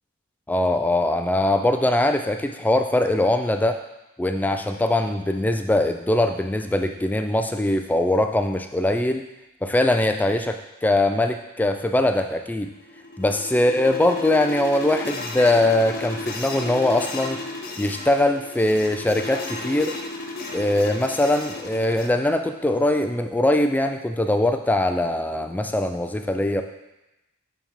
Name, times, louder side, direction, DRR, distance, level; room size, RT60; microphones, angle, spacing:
voice 1, 0.5-3.8 4.2-9.2 9.6-12.7 13.2-17.4 17.8-20.0 20.5-26.6, left 1 dB, 10° left, 6 dB, 0.3 m, -22 dB
sound 1, 12.6-22.1, left 2 dB, 45° left, 1.0 m, -33 dB
7.0 x 3.5 x 5.7 m, 0.96 s
head